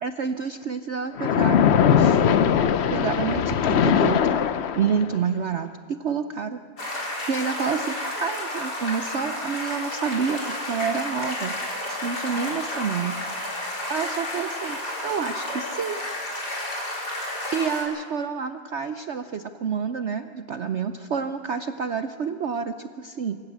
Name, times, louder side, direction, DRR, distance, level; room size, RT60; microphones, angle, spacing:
voice 1, 0.0-2.5 2.9-4.3 4.8-6.6 7.3-11.5 11.9-13.2 13.9-16.0 17.5-23.4, right 6 dB, 75° right, 9 dB, 0.6 m, -28 dB
Splash splatter, 1.2-5.2, left 8 dB, 80° left, 0.5 m, -20 dB
sound 1, 6.8-17.8, left 1 dB, 60° left, 4.7 m, -31 dB
25.0 x 14.5 x 8.3 m, 2.4 s
omnidirectional pair, 2.0 m